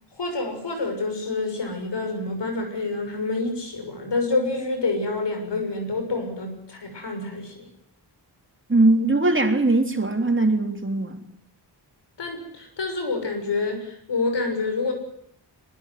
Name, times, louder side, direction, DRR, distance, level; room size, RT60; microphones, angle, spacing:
voice 1, 0.1-7.7 12.2-14.9, left 3 dB, 75° left, 5 dB, 6.8 m, -27 dB
voice 2, 8.7-11.2, right 2 dB, 30° right, 5 dB, 3.6 m, -20 dB
23.0 x 21.0 x 9.5 m, 0.72 s
cardioid pair, 55°, 42 cm